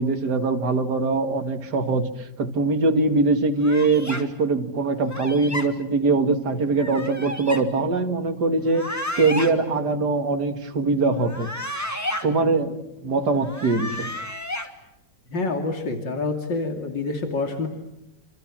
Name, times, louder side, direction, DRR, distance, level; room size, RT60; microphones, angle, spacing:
voice 1, 0.0-2.1 2.4-11.5 12.2-14.1, right 3 dB, 65° right, 7 dB, 2.7 m, -22 dB
sound 1, 3.6-4.2 5.1-5.7 6.8-7.6 8.6-9.5 11.2-12.2 13.4-14.7, left 1 dB, 10° left, 2.6 m, -32 dB
voice 2, 15.3-17.7, left 3 dB, 85° left, 5 dB, 3.2 m, -27 dB
27.5 x 27.5 x 7.6 m, 0.91 s
omnidirectional pair, 1.9 m